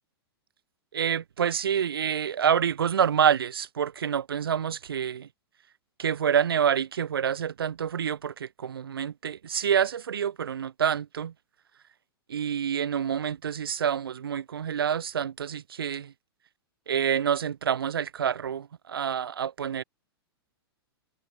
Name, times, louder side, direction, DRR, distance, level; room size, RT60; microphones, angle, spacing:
voice 1, 0.9-5.3 6.0-11.3 12.3-16.1 16.9-19.8, right 8 dB, 65° right, 6.3 m, -27 dB
figure-of-eight pair, 105°, 13 cm